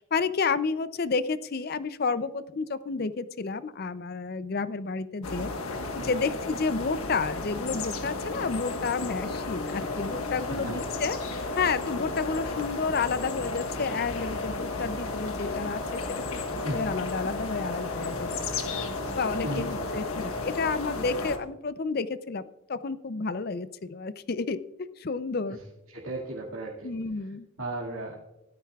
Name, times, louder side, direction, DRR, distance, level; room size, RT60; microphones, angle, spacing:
voice 1, 0.0-5.5 5.9-16.1 16.3-16.4 16.7-18.5 19.2-22.4 22.7-24.6 25.0-25.6 26.8-27.5, left 4 dB, 45° left, 14 dB, 0.5 m, -30 dB
sound 1, 5.2-21.4, left 3 dB, 85° left, 1.4 m, -33 dB
voice 2, 6.0-6.3 10.5-10.8 16.6-16.8 19.4-19.9 25.5-25.6 25.9-26.9 27.6-28.2, right 1 dB, 80° right, -5 dB, 2.2 m, -35 dB
17.0 x 12.5 x 2.4 m, 0.99 s
head